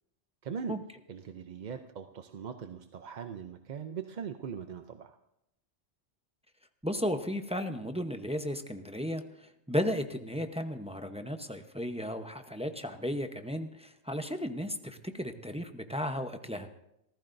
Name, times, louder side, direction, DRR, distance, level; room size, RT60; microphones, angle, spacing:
voice 1, 0.4-0.7 1.1-5.2, right 6 dB, 50° right, 7 dB, 0.6 m, -40 dB
voice 2, 6.8-16.7, equal, 5° right, 6 dB, 0.7 m, -34 dB
27.0 x 15.0 x 2.6 m, 0.83 s
omnidirectional pair, 1.2 m